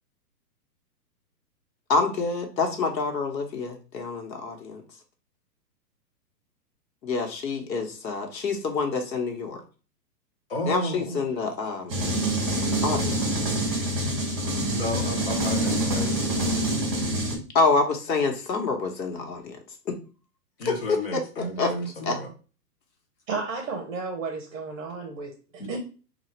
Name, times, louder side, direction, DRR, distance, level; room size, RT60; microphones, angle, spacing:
voice 1, 1.9-4.8 7.0-9.6 10.7-11.9 12.8-13.4 17.5-19.6 19.9-20.0 21.1-21.7 22.0-22.2, left 4 dB, 90° left, 4 dB, 1.2 m, -27 dB
voice 2, 10.5-11.2 14.7-16.5 20.6-22.3 25.6-25.8, left 1 dB, 35° left, 4 dB, 0.6 m, -32 dB
sound 1, 11.9-17.3, right 1 dB, 35° right, 1.4 m, -26 dB
voice 3, 23.3-25.8, right 4 dB, 50° right, 3 dB, 0.8 m, -33 dB
3.0 x 2.4 x 4.3 m, 0.36 s
hypercardioid pair, 175°, 49 cm